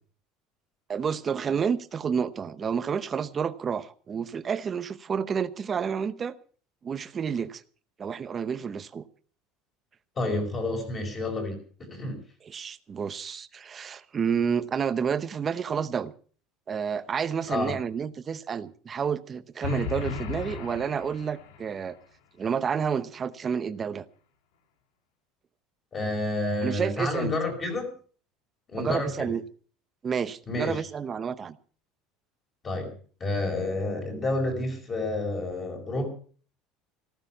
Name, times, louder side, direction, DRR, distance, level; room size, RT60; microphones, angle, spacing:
voice 1, 0.9-6.4 6.8-7.6 8.0-9.0 12.5-16.1 16.7-22.0 22.4-24.1 26.6-27.3 28.8-29.4 30.0-31.6, right 7 dB, 20° right, 13 dB, 0.8 m, -30 dB
voice 2, 10.2-11.6 11.9-12.2 17.5-17.8 25.9-27.9 28.7-29.3 30.5-30.8 32.6-32.9 33.2-36.1, left 2 dB, 20° left, 4 dB, 4.9 m, -29 dB
sound 1, 19.6-21.7, left 5 dB, 85° left, 2.1 m, -34 dB
15.0 x 14.5 x 5.6 m, 0.43 s
cardioid pair, 170°, 0 cm